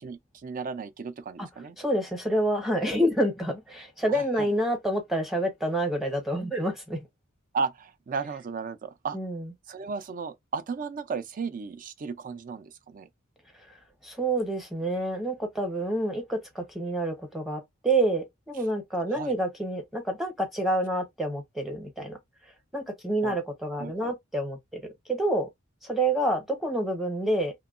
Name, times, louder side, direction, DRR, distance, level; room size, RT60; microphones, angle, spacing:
voice 1, 0.0-1.8 4.1-4.5 7.5-9.2 9.7-13.1 19.1-19.4 23.2-23.4 23.8-24.1, right 5 dB, 40° right, 0.4 m, -34 dB
voice 2, 1.8-7.0 9.1-9.5 14.0-22.2 22.7-24.8 25.1-25.5 25.8-27.5, right 1 dB, ahead, 0.7 m, -28 dB
2.9 x 2.2 x 2.3 m
head